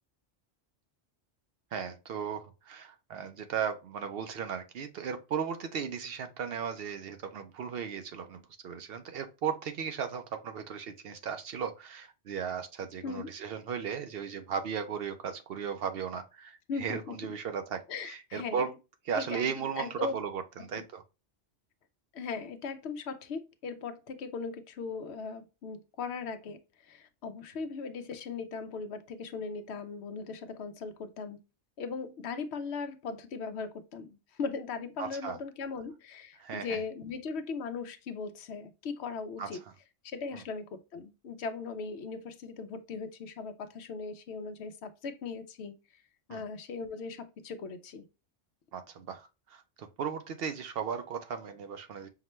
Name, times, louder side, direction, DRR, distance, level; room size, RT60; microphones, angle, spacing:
voice 1, 1.7-18.7 19.0-20.4 20.7-21.0 35.0-35.4 36.4-36.8 39.4-39.5 40.3-40.4 46.3-46.4 48.7-52.1, right 7 dB, 65° right, 0.7 m, -36 dB
voice 2, 13.0-13.4 16.7-17.3 17.9-18.7 19.1-20.1 20.7-20.8 22.1-31.4 31.8-39.6 40.0-46.0 46.3-48.0, left 4 dB, 75° left, 0.8 m, -39 dB
5.7 x 2.2 x 3.0 m
omnidirectional pair, 1.2 m